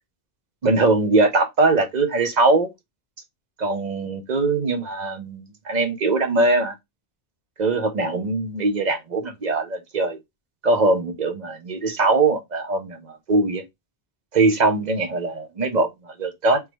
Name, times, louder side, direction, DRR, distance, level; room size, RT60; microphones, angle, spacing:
voice 1, 0.6-2.7 3.6-6.7 7.6-10.2 10.6-13.6 14.3-16.6, right 3 dB, 45° right, 0.9 m, -21 dB
3.5 x 3.2 x 3.0 m
omnidirectional pair, 1.0 m